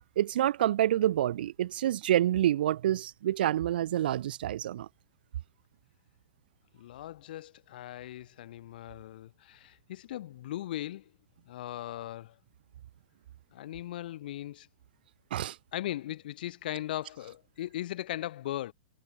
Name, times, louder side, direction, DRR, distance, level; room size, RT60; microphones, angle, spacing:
voice 1, 0.2-4.9 15.3-15.6, right 12 dB, 70° right, 0.4 m, -27 dB
voice 2, 6.7-11.0 11.5-12.4 13.5-14.7 15.7-18.7, left 13 dB, 65° left, 2.1 m, -38 dB
hypercardioid pair, 140°, 5 cm